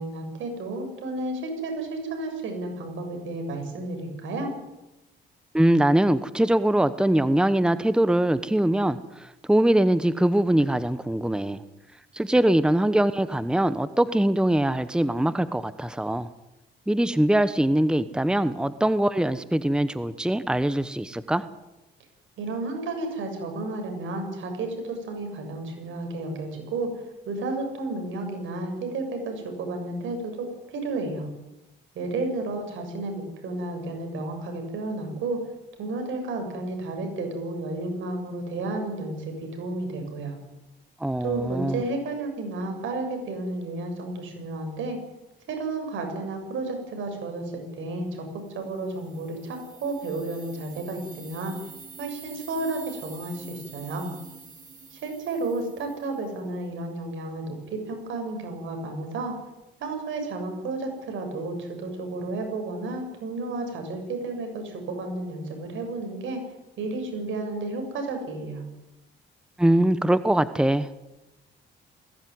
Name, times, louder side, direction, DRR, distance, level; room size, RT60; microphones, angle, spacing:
voice 1, 0.0-4.5 22.4-26.9 27.3-31.3 32.0-35.4 35.8-40.4 41.2-45.0 45.5-48.3 48.5-51.6 52.0-54.1 54.9-59.3 59.8-66.4 66.8-68.6, right 2 dB, 75° right, 4 dB, 7.1 m, -32 dB
voice 2, 5.5-11.6 12.1-16.3 16.9-21.4 41.0-41.8 69.6-70.9, right 1 dB, 5° right, 14 dB, 1.0 m, -22 dB
sound 1, 48.6-56.5, right 5 dB, 45° right, 4.9 m, -47 dB
20.5 x 17.0 x 9.6 m, 1.0 s
cardioid pair, 90°, 20 cm